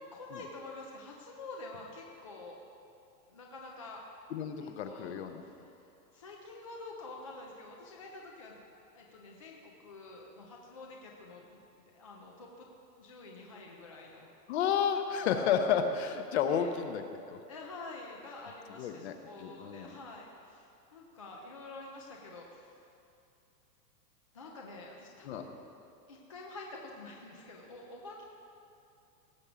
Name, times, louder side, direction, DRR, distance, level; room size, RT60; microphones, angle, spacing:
voice 1, 0.1-2.6 3.3-4.1 4.6-8.6 8.9-11.6 11.9-12.7 13.0-14.3 16.5-16.7 17.5-22.8 24.3-25.5 26.1-28.2, left 2 dB, 25° left, -1 dB, 0.4 m, -48 dB
voice 2, 4.3-5.4 14.5-17.0 17.3-17.4 18.8-19.9 25.2-25.4, left 7 dB, 40° left, 7 dB, 0.8 m, -31 dB
18.0 x 6.8 x 4.9 m, 2.6 s
supercardioid pair, 160°, 49 cm